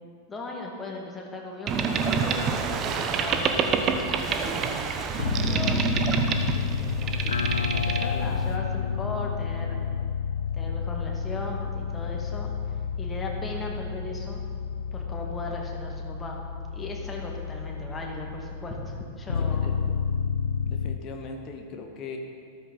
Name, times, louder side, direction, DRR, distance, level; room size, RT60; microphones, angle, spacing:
voice 1, 0.3-9.8 10.5-12.5 13.0-14.4 14.9-16.4 16.7-19.9, left 2 dB, 15° left, 0 dB, 2.2 m, -38 dB
Boat Water vehicle, 1.7-8.6, right 5 dB, 30° right, 1.0 m, -27 dB
sound 1, 5.2-21.0, left 6 dB, 70° left, 0.3 m, -30 dB
voice 2, 19.4-19.7 20.6-22.2, left 5 dB, 35° left, 3 dB, 1.3 m, -40 dB
13.5 x 13.5 x 4.1 m, 2.3 s
figure-of-eight pair, 90°, 0 cm